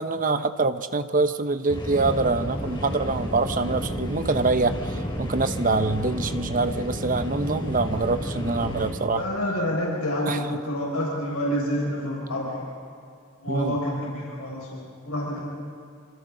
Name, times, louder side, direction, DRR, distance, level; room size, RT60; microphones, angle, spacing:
voice 1, 0.0-9.2 10.3-10.4 13.5-13.8, right 3 dB, 40° right, 9 dB, 0.9 m, -25 dB
sound 1, 1.7-8.9, equal, 20° left, 3.3 m, -31 dB
voice 2, 9.1-12.7 13.4-15.4, equal, 85° left, -4 dB, 5.7 m, -28 dB
27.0 x 27.0 x 3.9 m, 2.3 s
head